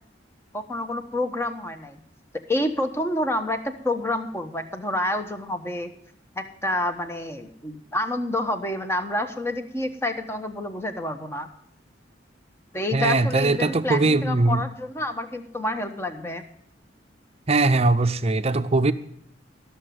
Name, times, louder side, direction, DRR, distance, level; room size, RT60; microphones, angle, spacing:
voice 1, 0.5-2.0 2.5-5.9 6.3-11.5 12.7-16.4, left 1 dB, 15° left, 7 dB, 1.0 m, -28 dB
voice 2, 12.9-14.6 17.5-18.9, right 3 dB, 35° right, 11 dB, 0.6 m, -21 dB
13.0 x 6.9 x 9.2 m, 0.68 s
head